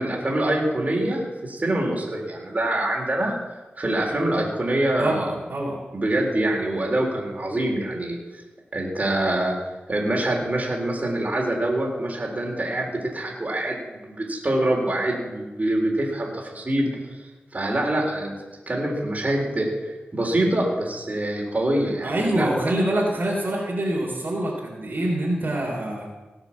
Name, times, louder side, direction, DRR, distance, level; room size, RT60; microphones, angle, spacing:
voice 1, 0.0-3.3 3.8-5.3 5.9-8.2 8.7-9.6 9.9-16.9 17.5-18.4 18.7-22.5, right 1 dB, 40° right, -1 dB, 3.9 m, -25 dB
voice 2, 5.0-5.8 22.0-26.1, right 1 dB, 55° right, -3 dB, 3.5 m, -25 dB
18.0 x 7.4 x 7.3 m, 1.1 s
wide cardioid pair, 65°, 4 cm